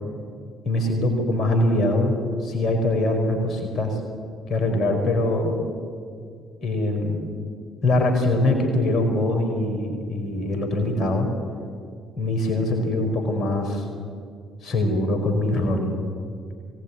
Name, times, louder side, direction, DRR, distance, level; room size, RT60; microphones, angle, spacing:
voice 1, 0.6-2.2 2.4-4.0 4.5-5.6 6.6-7.3 7.8-11.3 12.2-13.9 14.6-16.0, left 1 dB, 55° left, 3 dB, 4.8 m, -23 dB
23.5 x 18.5 x 9.8 m, 2.2 s
hypercardioid pair, 50°, 0 cm